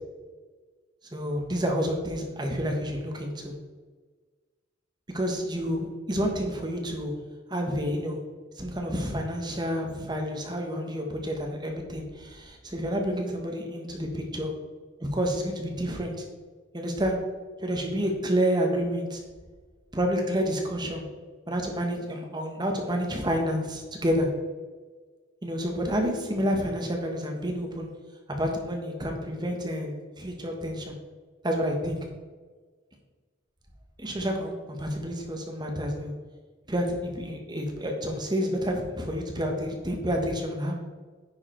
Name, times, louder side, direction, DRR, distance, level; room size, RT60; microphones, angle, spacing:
voice 1, 1.1-3.5 5.1-7.1 7.5-8.2 8.6-14.5 15.0-16.2 16.7-17.2 17.6-19.2 19.9-21.0 21.5-24.3 25.4-27.9 28.3-30.9 31.4-32.0 34.0-36.1 36.7-40.7, equal, 20° right, 2 dB, 1.2 m, -29 dB
9.8 x 4.8 x 4.4 m, 1.4 s
head